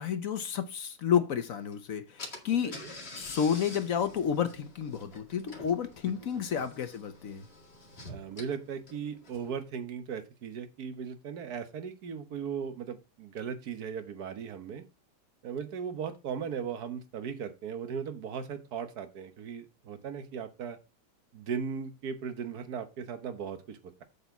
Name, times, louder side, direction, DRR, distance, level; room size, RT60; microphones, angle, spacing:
voice 1, 0.0-2.8 3.1-7.4, left 8 dB, 55° left, 1.0 m, -30 dB
Car / Engine, 1.7-1.8 2.2-9.6, left 2 dB, 35° left, 2.1 m, -47 dB
voice 2, 8.1-14.8 15.4-20.8 21.3-24.0, right 7 dB, 55° right, 1.5 m, -37 dB
8.3 x 4.3 x 7.0 m
omnidirectional pair, 2.1 m